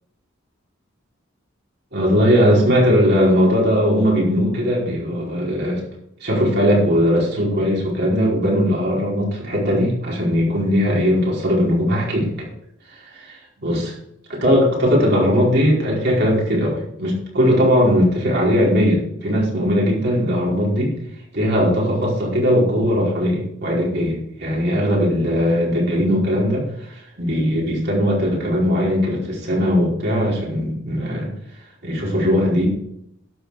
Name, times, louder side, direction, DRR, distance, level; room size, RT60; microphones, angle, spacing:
voice 1, 1.9-5.8 6.2-12.5 12.9-13.9 14.3-20.9 21.3-31.3 31.8-32.7, equal, 55° right, -4 dB, 4.8 m, -19 dB
12.0 x 8.7 x 5.0 m, 0.75 s
head